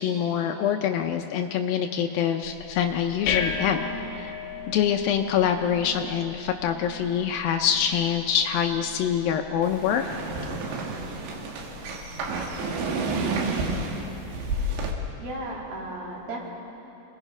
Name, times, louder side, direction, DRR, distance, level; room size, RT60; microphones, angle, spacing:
voice 1, 0.0-3.8 4.2-4.3 4.7-10.0, left 8 dB, 85° left, 5 dB, 2.1 m, -25 dB
sound 1, 2.4-13.4, left 5 dB, 65° left, 1.9 m, -37 dB
sound 2, 9.6-14.9, right 3 dB, 90° right, 4.1 m, -30 dB
voice 2, 13.3-14.0 15.2-16.5, right 1 dB, 60° right, -3 dB, 4.6 m, -36 dB
27.5 x 19.5 x 5.5 m, 3.0 s
omnidirectional pair, 5.0 m